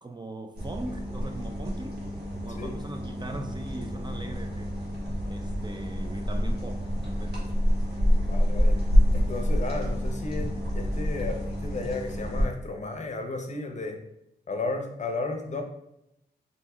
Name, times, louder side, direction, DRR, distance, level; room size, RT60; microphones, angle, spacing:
voice 1, 0.0-2.0 2.4-4.7 5.3-7.5, right 2 dB, 25° right, 4 dB, 0.4 m, -40 dB
sound 1, 0.5-12.5, equal, 65° right, 1.3 m, -27 dB
voice 2, 8.3-8.8 9.1-10.5 10.7-14.0 14.5-15.6, left 3 dB, 40° left, 4 dB, 0.6 m, -33 dB
4.0 x 2.6 x 2.3 m, 0.83 s
cardioid pair, 55°, 18 cm